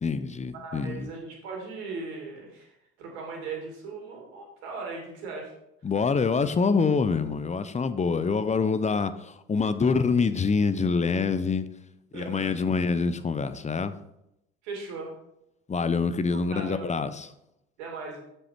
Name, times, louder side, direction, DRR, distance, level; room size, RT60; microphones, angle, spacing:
voice 1, 0.0-1.1 5.8-11.7 12.1-13.9 15.7-17.3, left 5 dB, 20° left, 12 dB, 0.7 m, -26 dB
voice 2, 0.5-5.5 12.1-12.6 14.6-15.1 16.3-16.9 17.8-18.2, right 4 dB, 75° right, 0 dB, 2.5 m, -38 dB
7.3 x 6.8 x 4.5 m, 0.82 s
hypercardioid pair, 55°, 33 cm